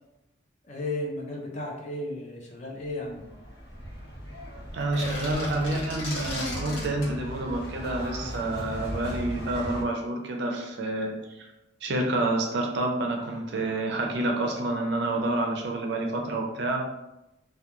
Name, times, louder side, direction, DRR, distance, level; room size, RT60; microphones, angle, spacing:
voice 1, 0.6-3.2, left 1 dB, 35° left, -1 dB, 0.4 m, -34 dB
sound 1, 2.9-9.8, equal, 60° left, 1.2 m, -38 dB
voice 2, 4.7-11.1 11.8-16.8, right 2 dB, 60° right, 2 dB, 0.4 m, -28 dB
sound 2, 4.8-7.1, left 1 dB, 80° left, 0.9 m, -35 dB
2.3 x 2.2 x 2.9 m, 0.95 s
head